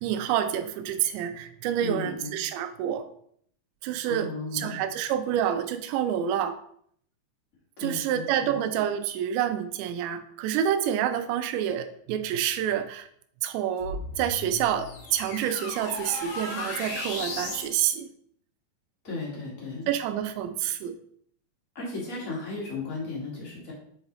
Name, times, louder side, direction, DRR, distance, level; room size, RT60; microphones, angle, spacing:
voice 1, 0.0-3.1 3.8-6.6 7.8-13.1 13.4-18.1 19.9-21.0, right 10 dB, 85° right, 9 dB, 2.9 m, -28 dB
voice 2, 1.8-2.3 4.0-4.8 7.8-8.6 19.0-19.9 21.7-23.7, left 3 dB, 35° left, -5 dB, 1.4 m, -35 dB
sound 1, 13.8-17.7, left 2 dB, 60° left, 2.5 m, -36 dB
7.8 x 4.3 x 4.0 m, 0.64 s
omnidirectional pair, 5.1 m